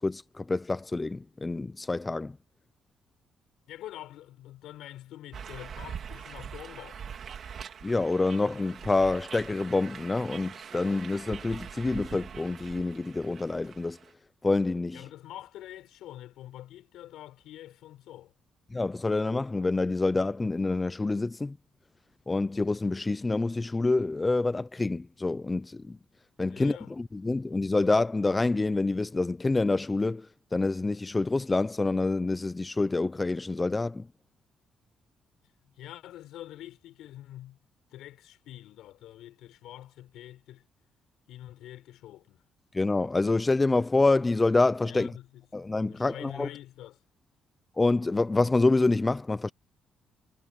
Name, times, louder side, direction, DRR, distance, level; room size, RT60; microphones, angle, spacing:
voice 1, 0.0-2.4 7.8-14.0 14.4-15.0 18.7-21.6 22.3-26.0 26.4-30.3 30.5-34.1 42.7-45.1 45.5-46.5 47.8-49.5, left 3 dB, 20° left, 0.5 m, -27 dB
voice 2, 3.7-7.2 14.9-18.3 26.5-26.9 35.6-37.6 37.9-40.6 41.3-42.4 44.9-45.5 45.9-47.0, left 13 dB, 85° left, 4.7 m, -46 dB
sound 1, 5.3-14.1, right 7 dB, 55° right, 3.2 m, -43 dB
cardioid pair, 90°, 0 cm